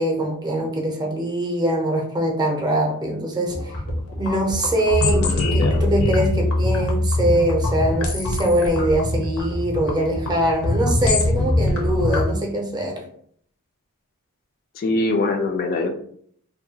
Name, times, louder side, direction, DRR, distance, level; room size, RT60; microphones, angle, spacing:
voice 1, 0.0-3.7 4.2-13.0, right 1 dB, 20° right, 1 dB, 0.5 m, -23 dB
sound 1, 3.5-12.3, left 1 dB, 80° left, 0.7 m, -23 dB
voice 2, 5.0-5.9 14.8-16.0, left 2 dB, 45° left, 4 dB, 0.3 m, -24 dB
2.7 x 2.2 x 2.7 m, 0.63 s
head